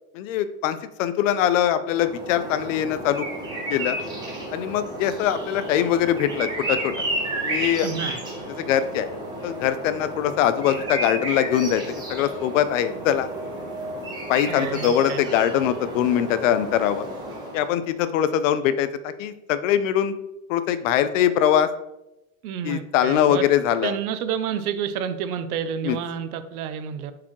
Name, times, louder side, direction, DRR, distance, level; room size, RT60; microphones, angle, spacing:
voice 1, 0.1-3.3 3.7-4.0 4.5-6.9 7.4-7.9 8.6-9.1 9.4-11.8 12.1-13.3 14.3-17.1 17.5-20.1 20.5-21.7 22.6-23.9 25.8-26.0, left 10 dB, 60° left, 12 dB, 0.5 m, -22 dB
sound 1, 1.9-17.8, right 1 dB, 10° right, 0.9 m, -32 dB
voice 2, 7.8-8.2 14.5-15.2 22.4-23.5 23.8-27.1, right 8 dB, 80° right, 11 dB, 0.7 m, -29 dB
7.1 x 4.8 x 3.1 m, 0.92 s
supercardioid pair, 170°, 43 cm